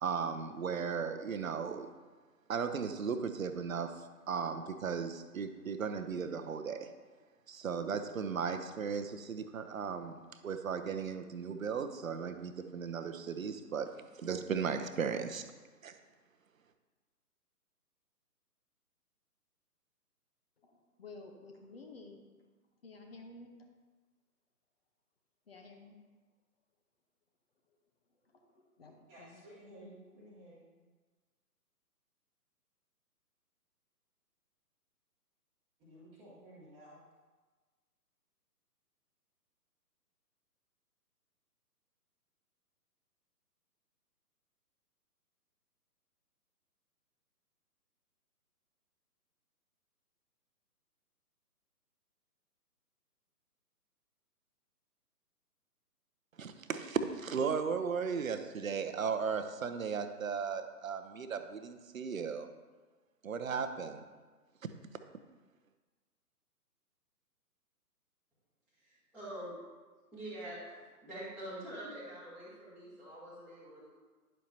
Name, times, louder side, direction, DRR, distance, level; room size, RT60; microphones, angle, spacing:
voice 1, 0.0-1.9 2.5-3.9 4.3-6.9 7.5-13.9 14.1-15.5 15.8-16.0 56.4-62.5 63.2-64.0 64.6-64.7, right 6 dB, 55° right, 8 dB, 0.8 m, -36 dB
voice 2, 21.0-22.2 22.8-23.7 25.5-26.0 28.8-29.4, left 3 dB, 40° left, 3 dB, 0.9 m, -51 dB
voice 3, 29.1-30.7 35.8-37.0, right 1 dB, 15° right, -10 dB, 1.2 m, -54 dB
voice 4, 68.8-69.6 70.1-73.9, right 1 dB, 5° left, -13 dB, 1.3 m, -45 dB
10.5 x 7.6 x 2.8 m, 1.3 s
figure-of-eight pair, 140°, 48 cm